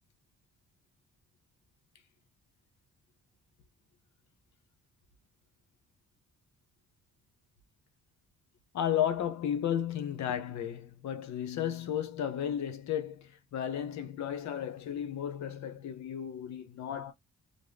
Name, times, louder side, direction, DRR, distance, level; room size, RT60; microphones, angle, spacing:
voice 1, 8.7-17.1, left 9 dB, 65° left, 0.8 m, -33 dB
2.5 x 2.1 x 3.4 m
cardioid pair, 90°, 30 cm